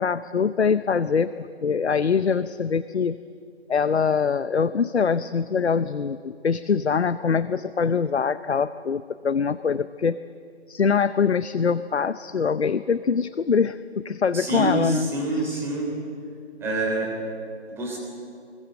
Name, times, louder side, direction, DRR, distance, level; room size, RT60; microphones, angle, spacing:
voice 1, 0.0-3.2 3.7-10.2 10.7-15.1 15.3-15.7, left 6 dB, 70° left, 15 dB, 0.8 m, -23 dB
voice 2, 14.3-15.9 16.6-17.1 17.7-18.0, right 2 dB, 5° right, -1 dB, 3.3 m, -26 dB
24.0 x 21.5 x 7.7 m, 2.4 s
figure-of-eight pair, 150°, 34 cm